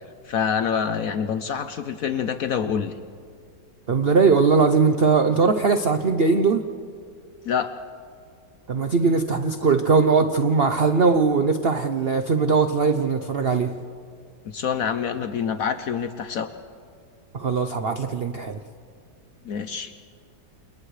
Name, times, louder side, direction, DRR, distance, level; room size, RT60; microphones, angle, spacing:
voice 1, 0.2-2.9 7.4-7.7 14.4-16.5 19.4-19.9, left 7 dB, 65° left, 10 dB, 0.9 m, -26 dB
voice 2, 3.9-6.6 8.7-13.7 17.3-18.6, right 4 dB, 65° right, 7 dB, 0.6 m, -20 dB
28.5 x 28.5 x 3.3 m, 2.2 s
omnidirectional pair, 2.0 m